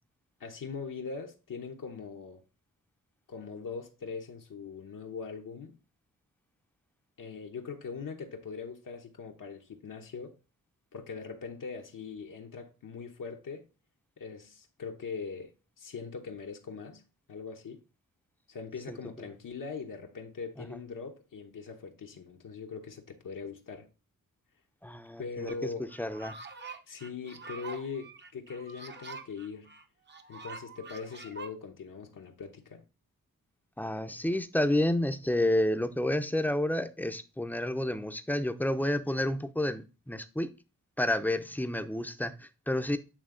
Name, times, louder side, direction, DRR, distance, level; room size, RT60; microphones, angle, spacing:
voice 1, 0.4-2.4 3.3-5.8 7.2-10.4 10.9-13.7 14.2-15.5 15.8-17.0 17.3-17.8 18.5-23.9 25.2-25.9 26.9-29.7 30.3-32.8, left 5 dB, 75° left, 1.0 m, -41 dB
voice 2, 24.8-25.5 26.0-26.3 33.8-40.5 41.0-43.0, left 1 dB, 5° left, 0.5 m, -30 dB
sound 1, 25.5-25.6 25.9-31.5, right 4 dB, 35° right, 0.7 m, -45 dB
8.8 x 3.3 x 3.8 m
wide cardioid pair, 85°, 32 cm